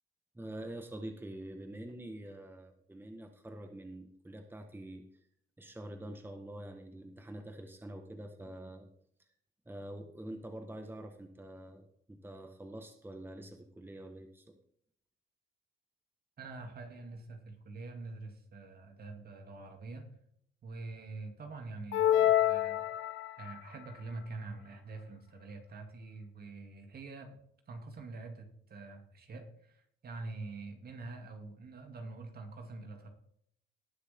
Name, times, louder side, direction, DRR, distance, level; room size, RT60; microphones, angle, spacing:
voice 1, 0.3-5.0 5.6-8.9 9.6-14.6, right 1 dB, 10° right, 5 dB, 1.6 m, -46 dB
voice 2, 16.4-20.1 20.6-22.9 23.4-27.4 27.7-33.1, right 3 dB, 50° right, 4 dB, 2.8 m, -45 dB
sound 1, 21.9-23.6, left 12 dB, 75° left, 0.7 m, -27 dB
19.5 x 6.5 x 3.7 m, 0.67 s
cardioid pair, 90°, 20 cm